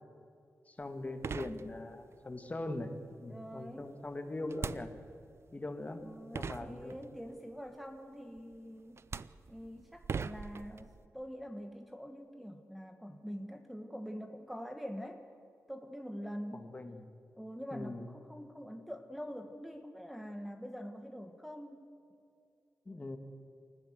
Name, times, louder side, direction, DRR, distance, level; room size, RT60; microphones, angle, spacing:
voice 1, 0.7-2.9 3.2-4.9 5.5-6.0 6.3-7.0 16.5-17.0 17.7-18.1 22.9-23.2, left 2 dB, 25° left, 7 dB, 1.9 m, -41 dB
sound 1, 0.8-0.9 1.2-2.1 4.5-5.4 6.0-6.1 6.3-7.3 8.4-8.6 9.0-11.1, right 5 dB, 50° right, 0.6 m, -41 dB
voice 2, 3.2-3.9 6.0-9.0 9.5-15.2 15.7-16.7 17.4-21.9, equal, ahead, 4 dB, 1.3 m, -45 dB
28.0 x 14.5 x 7.8 m, 2.5 s
wide cardioid pair, 130°, 6 cm